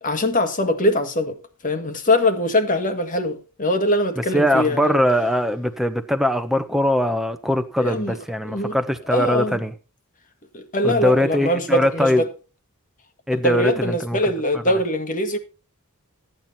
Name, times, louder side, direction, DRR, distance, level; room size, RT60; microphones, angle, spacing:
voice 1, 0.0-1.4 1.6-5.0 7.8-8.2 8.5-8.8 9.1-9.6 10.5-12.2 13.4-15.4, left 1 dB, 35° left, 1.7 m, -22 dB
voice 2, 4.2-9.7 10.8-12.2 13.3-14.2 14.5-14.8, left 1 dB, ahead, 1.0 m, -21 dB
14.0 x 9.2 x 4.2 m
head